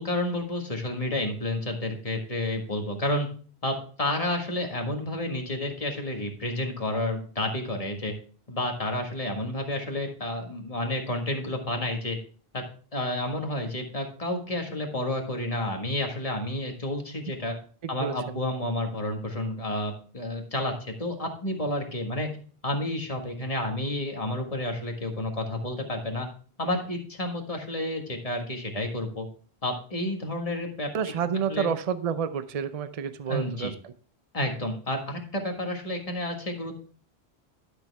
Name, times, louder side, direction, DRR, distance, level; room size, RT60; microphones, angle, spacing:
voice 1, 0.0-3.3 3.6-8.1 8.5-12.2 12.5-12.6 12.9-17.5 17.9-22.3 22.6-26.3 26.6-29.3 29.6-30.9 31.5-31.7 33.3-33.7 34.3-36.7, left 1 dB, 35° left, 2 dB, 1.7 m, -30 dB
voice 2, 17.8-18.4 30.9-33.9, right 7 dB, 45° right, 11 dB, 0.6 m, -30 dB
11.5 x 6.4 x 3.4 m, 0.43 s
omnidirectional pair, 1.0 m